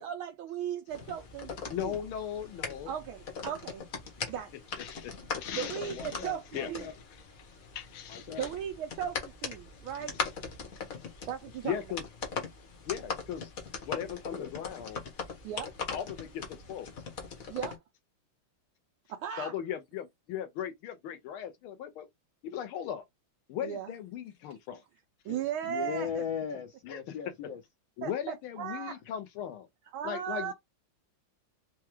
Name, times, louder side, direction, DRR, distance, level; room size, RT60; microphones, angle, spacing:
voice 1, 0.0-1.5 1.8-1.9 2.9-3.9 4.3-4.5 5.5-6.8 8.4-10.2 11.3-11.8 15.4-15.7 17.5-17.8 19.1-19.5 23.6-23.9 25.2-26.2 28.0-28.9 29.9-30.5, right 9 dB, 80° right, 1.5 m, -36 dB
sound 1, 0.9-17.8, left 5 dB, 50° left, 1.3 m, -40 dB
voice 2, 1.7-2.9 4.7-6.9 7.7-8.5 11.6-12.0 12.9-13.5 13.9-15.0 15.9-16.4 16.7-16.9 19.4-22.1 22.4-23.0 23.5-24.8 26.9-27.1 28.0-29.7 30.0-30.5, left 9 dB, 90° left, 1.7 m, -38 dB
voice 3, 5.4-6.9 8.1-8.5 14.3-14.5 25.3-25.4 25.6-27.6, left 7 dB, 70° left, 1.5 m, -38 dB
4.5 x 2.3 x 3.0 m
omnidirectional pair, 2.3 m